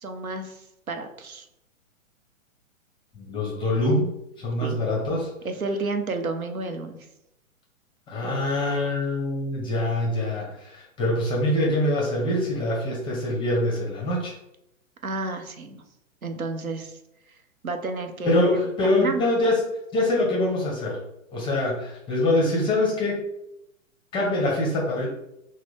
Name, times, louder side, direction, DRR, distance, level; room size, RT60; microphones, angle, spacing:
voice 1, 0.0-1.5 4.6-4.8 5.4-7.0 15.0-15.8 16.2-17.0 17.6-19.2, right 3 dB, 90° right, 6 dB, 0.8 m, -31 dB
voice 2, 3.1-4.1 4.4-5.3 8.1-14.3 18.2-19.6 19.9-21.0 21.3-23.2 24.1-25.1, left 1 dB, 10° left, -2 dB, 0.7 m, -24 dB
5.9 x 2.2 x 3.2 m, 0.84 s
figure-of-eight pair, 120°, 41 cm